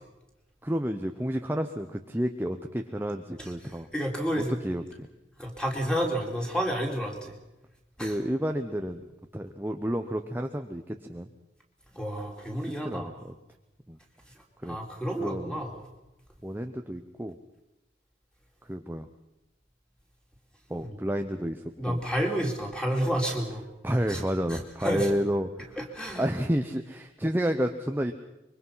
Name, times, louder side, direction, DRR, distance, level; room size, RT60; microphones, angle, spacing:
voice 1, 0.6-3.9 4.3-5.1 8.0-9.0 9.3-11.3 12.8-13.3 13.9-14.0 14.6-14.8 15.2-15.6 16.4-17.4 18.7-19.1 20.7-22.0 23.8-25.8 26.2-28.1, equal, 10° right, 5 dB, 0.8 m, -30 dB
voice 2, 3.9-4.5 5.4-7.3 8.0-8.2 12.0-13.1 14.6-15.8 20.8-21.0 21.8-23.6 24.1-24.2 24.5-25.1 25.8-26.2, equal, 5° left, 1 dB, 3.6 m, -30 dB
24.5 x 23.5 x 5.7 m, 0.98 s
head